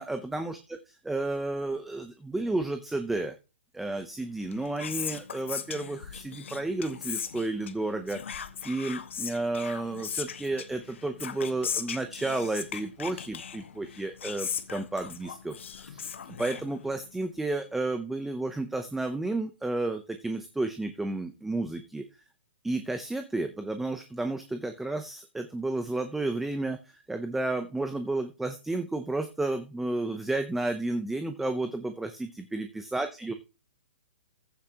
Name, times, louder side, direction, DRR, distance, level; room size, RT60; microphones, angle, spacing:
voice 1, 0.0-3.3 3.7-22.0 22.6-33.3, right 2 dB, 5° right, 8 dB, 0.6 m, -32 dB
Whispering, 4.3-17.2, left 7 dB, 80° left, 1.3 m, -38 dB
15.0 x 8.4 x 2.9 m, 0.29 s
hypercardioid pair, 165°, 6 cm